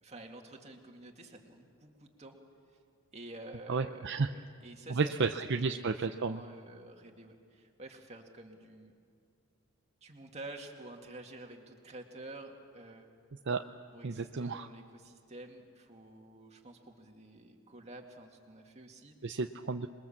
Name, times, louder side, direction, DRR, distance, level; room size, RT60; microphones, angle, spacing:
voice 1, 0.0-2.4 3.1-5.3 5.7-8.9 10.0-13.1 13.9-19.3, right 2 dB, 30° right, 2 dB, 2.3 m, -50 dB
voice 2, 3.7-4.3 4.9-6.4 13.5-13.6 14.0-14.7 19.2-19.9, right 4 dB, 55° right, 6 dB, 0.6 m, -32 dB
27.0 x 21.5 x 7.3 m, 2.2 s
head